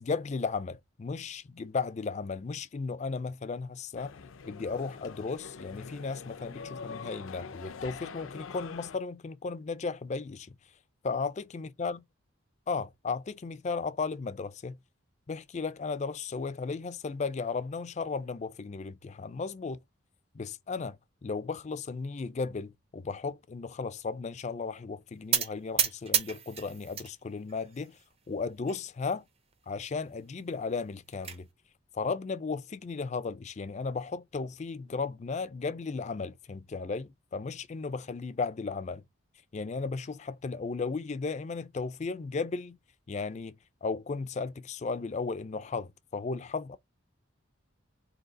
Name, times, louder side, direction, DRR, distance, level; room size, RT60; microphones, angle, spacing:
voice 1, 0.0-4.2 4.5-10.6 11.0-12.0 12.7-14.8 15.3-19.8 20.3-28.0 28.3-29.2 29.7-31.5 31.9-39.0 39.5-42.8 43.1-46.8, left 4 dB, 35° left, 0.4 m, -35 dB
people talking, 4.0-9.0, left 5 dB, 85° left, 0.5 m, -44 dB
sound 1, 25.3-27.1 27.5-28.1 28.7-28.8 29.1-29.2 29.5-29.6 30.7-31.4, right 8 dB, 30° right, 0.6 m, -31 dB
3.9 x 2.8 x 3.8 m
head